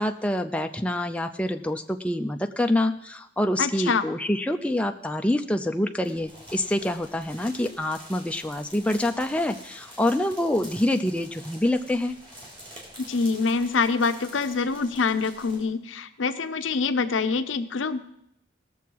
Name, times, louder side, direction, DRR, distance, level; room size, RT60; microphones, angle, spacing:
voice 1, 0.0-12.2, left 1 dB, 5° left, 5 dB, 0.4 m, -26 dB
voice 2, 3.6-4.0 13.0-18.0, left 4 dB, 80° left, 10 dB, 0.7 m, -25 dB
sound 1, 6.0-15.6, equal, 25° right, 3.4 m, -46 dB
18.5 x 7.0 x 4.7 m, 0.76 s
head